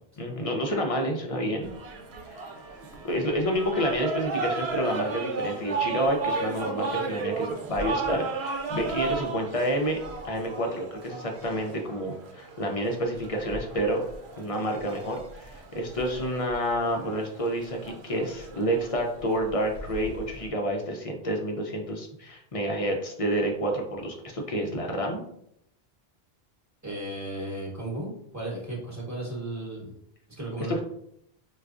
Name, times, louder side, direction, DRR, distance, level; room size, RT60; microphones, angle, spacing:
voice 1, 0.2-1.7 2.3-2.4 3.0-10.0 10.2-14.1 14.4-25.2 30.6-30.8, equal, 45° left, 2 dB, 0.5 m, -29 dB
sound 1, 1.6-20.5, right 4 dB, 85° right, 0.8 m, -35 dB
voice 2, 26.8-29.9 30.4-30.8, right 1 dB, 15° right, -4 dB, 1.0 m, -35 dB
4.4 x 2.3 x 2.4 m, 0.72 s
omnidirectional pair, 1.0 m